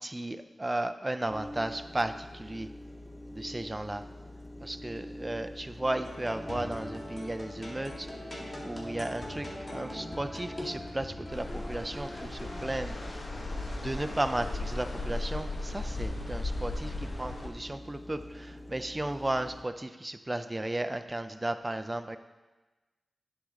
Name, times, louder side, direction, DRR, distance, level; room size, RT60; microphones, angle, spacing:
voice 1, 0.0-2.7 3.3-4.0 4.6-8.1 8.6-13.2 13.7-22.2, right 1 dB, 20° right, 9 dB, 0.5 m, -34 dB
sound 1, 1.3-19.6, left 1 dB, 15° left, 0.7 m, -45 dB
sound 2, 6.0-12.7, left 1 dB, 30° left, 1.8 m, -42 dB
sound 3, 11.3-17.5, left 2 dB, 50° left, 1.1 m, -36 dB
9.9 x 6.4 x 3.7 m, 1.2 s
cardioid pair, 70°, 0 cm